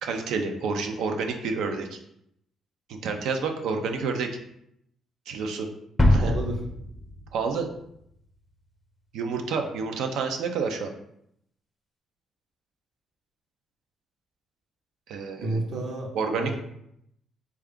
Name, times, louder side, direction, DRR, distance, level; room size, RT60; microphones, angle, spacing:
voice 1, 0.0-2.0 2.9-4.4 5.3-5.7 6.1-6.3 7.3-7.7 9.1-10.9 15.1-15.6 16.1-16.5, right 4 dB, 85° right, 4 dB, 0.4 m, -29 dB
sound 1, 6.0-8.1, left 1 dB, 15° left, 0.5 m, -24 dB
voice 2, 6.2-6.6 15.4-16.5, right 2 dB, 65° right, 1 dB, 0.8 m, -31 dB
3.3 x 2.3 x 3.5 m, 0.75 s
cardioid pair, 90°, 0 cm